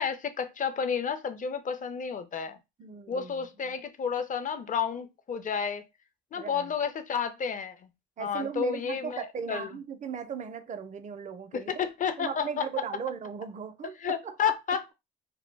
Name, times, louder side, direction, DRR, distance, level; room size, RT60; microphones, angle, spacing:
voice 1, 0.0-2.6 3.1-5.8 6.3-7.8 8.2-9.7 11.5-12.7 14.0-14.9, left 7 dB, 40° left, 0.5 m, -31 dB
voice 2, 2.8-3.7 6.3-6.7 8.2-11.7 12.2-14.5, right 7 dB, 35° right, 0.4 m, -37 dB
2.2 x 2.1 x 3.2 m
cardioid pair, 80°, 21 cm